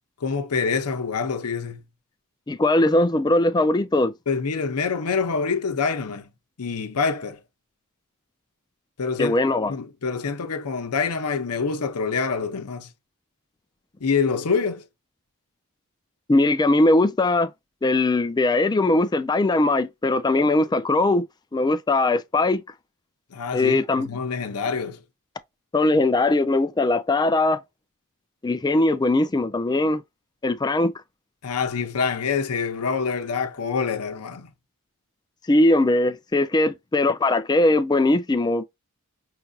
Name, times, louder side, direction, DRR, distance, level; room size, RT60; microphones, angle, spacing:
voice 1, 0.2-1.8 4.3-6.3 6.6-7.4 9.0-9.4 9.7-12.9 14.0-14.9 23.3-25.0 31.4-34.5, left 5 dB, 90° left, 0.7 m, -26 dB
voice 2, 2.5-4.1 9.2-9.7 16.3-17.5 17.8-21.2 21.5-22.6 23.5-24.1 25.7-27.6 28.4-30.0 30.4-30.9 35.5-38.6, left 2 dB, 20° left, 0.4 m, -20 dB
5.8 x 2.6 x 2.3 m
head